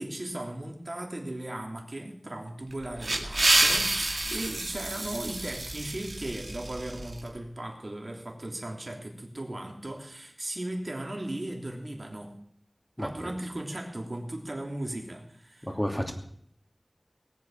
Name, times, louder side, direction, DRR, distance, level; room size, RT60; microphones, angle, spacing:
voice 1, 0.0-12.4 13.0-15.8, right 1 dB, 60° right, 1 dB, 3.2 m, -37 dB
sound 1, 2.7-7.2, right 2 dB, 80° right, 2.3 m, -28 dB
voice 2, 13.0-13.3 15.6-16.1, equal, 15° left, 3 dB, 2.7 m, -31 dB
19.5 x 8.4 x 7.4 m, 0.66 s
wide cardioid pair, 45°, 0 cm